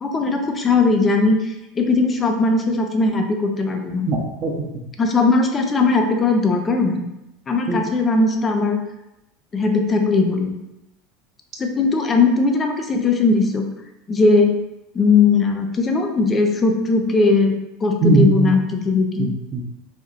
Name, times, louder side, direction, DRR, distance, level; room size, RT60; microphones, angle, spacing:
voice 1, 0.0-4.1 5.0-7.1 7.5-8.8 9.5-10.5 11.6-13.7 14.1-14.6 14.9-19.3, left 3 dB, 25° left, 4 dB, 0.6 m, -19 dB
voice 2, 4.1-4.7 7.7-7.8 18.0-18.6 19.2-19.6, right 3 dB, 45° right, 0 dB, 0.8 m, -20 dB
4.1 x 3.0 x 2.5 m, 0.91 s
hypercardioid pair, 80°, 0 cm